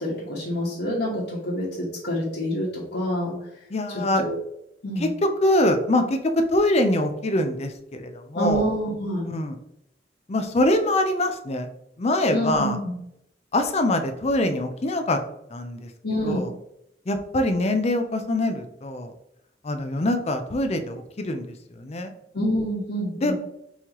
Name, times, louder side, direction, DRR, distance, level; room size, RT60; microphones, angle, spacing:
voice 1, 0.0-3.3 3.9-4.4 4.8-5.1 8.3-9.3 12.3-12.9 16.0-16.4 22.3-23.3, equal, 90° left, -9 dB, 1.3 m, -27 dB
voice 2, 3.7-4.2 5.0-5.1 5.4-8.7 9.3-9.5 10.3-11.7 12.0-12.8 13.5-15.2 15.5-15.9 16.2-16.5 17.1-19.1 19.6-21.4 21.8-22.1 23.2-23.3, left 1 dB, 35° left, 7 dB, 0.5 m, -24 dB
5.5 x 3.1 x 3.0 m, 0.80 s
head